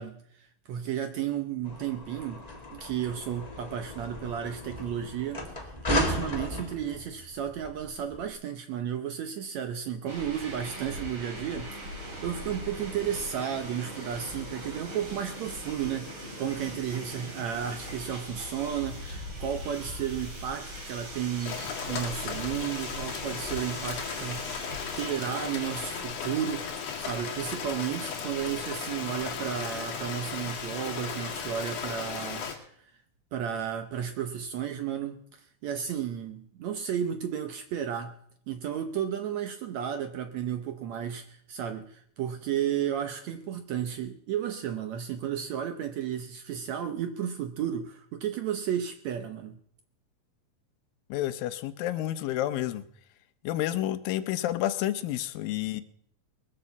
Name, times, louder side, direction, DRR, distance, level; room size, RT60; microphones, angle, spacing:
voice 1, 0.0-2.4 2.7-24.5 25.0-32.5 33.3-38.2 38.5-49.6, right 9 dB, 70° right, 1.7 m, -33 dB
sound 1, 1.6-8.3, left 1 dB, 20° left, 1.1 m, -35 dB
sound 2, 10.1-26.0, equal, 35° right, 4.7 m, -41 dB
Rain, 21.4-32.5, left 6 dB, 65° left, 3.8 m, -36 dB
voice 2, 51.1-52.8 53.4-55.8, left 13 dB, 85° left, 2.6 m, -30 dB
20.5 x 8.1 x 7.1 m
omnidirectional pair, 4.0 m